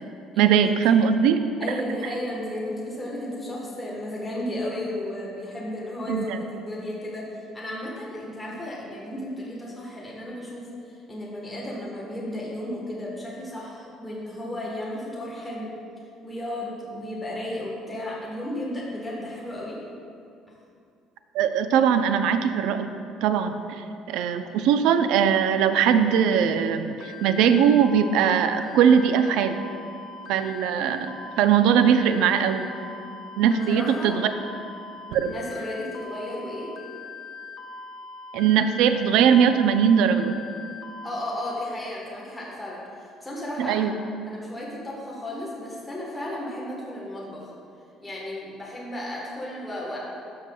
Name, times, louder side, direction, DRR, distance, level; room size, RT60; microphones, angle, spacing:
voice 1, 0.4-1.4 6.1-6.4 21.3-22.9 23.2-23.8 24.1-29.6 30.3-32.7 33.4-34.3 35.1-35.3 38.3-40.4 43.6-44.0, right 8 dB, 80° right, 9 dB, 0.4 m, -20 dB
voice 2, 1.6-15.7 16.2-19.8 33.4-34.1 35.2-36.7 41.0-43.9 44.3-47.5 48.0-50.0, left 1 dB, 10° left, -5 dB, 1.2 m, -34 dB
sound 1, 27.0-41.6, left 4 dB, 45° left, 0.6 m, -41 dB
12.0 x 5.8 x 2.3 m, 2.5 s
cardioid pair, 150°, 0 cm